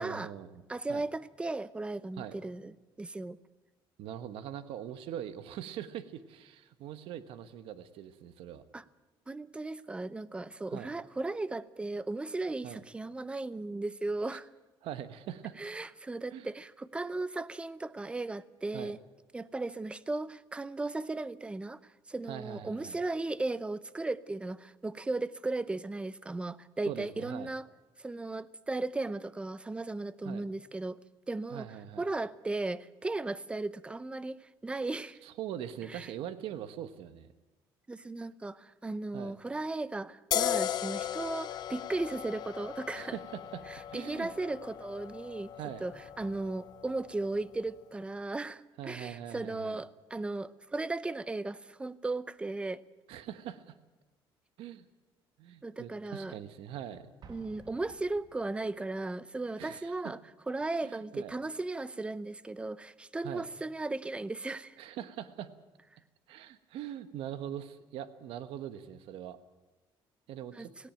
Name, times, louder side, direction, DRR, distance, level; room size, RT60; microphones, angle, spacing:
voice 1, 0.0-0.6 0.9-1.1 2.2-2.4 4.0-8.6 10.7-10.9 12.6-12.8 14.8-15.6 16.3-16.5 18.7-18.9 22.3-23.0 26.8-27.5 30.2-30.4 31.5-32.1 35.2-37.3 39.1-39.4 42.9-43.6 43.9-44.3 45.6-45.8 48.8-49.8 53.1-53.8 54.6-54.8 55.4-57.1 59.6-60.1 60.8-61.3 63.2-63.5 64.8-65.5 66.3-69.4 70.3-70.7, right 10 dB, 75° right, 11 dB, 1.3 m, -42 dB
voice 2, 0.7-2.7 3.0-3.4 8.7-8.8 9.3-14.5 15.6-19.0 19.3-21.8 22.1-27.6 28.0-31.0 31.3-31.7 32.0-35.2 35.9-36.1 37.9-43.2 43.7-45.5 45.8-52.8 55.6-56.4 57.3-60.2 60.5-64.8 70.5-70.7, right 2 dB, 10° right, 17 dB, 0.6 m, -36 dB
sound 1, 40.3-47.6, left 11 dB, 50° left, 0.6 m, -37 dB
Explosion, 57.2-58.9, right 5 dB, 50° right, 1.7 m, -55 dB
18.0 x 17.0 x 9.1 m, 1.1 s
cardioid pair, 140°, 9 cm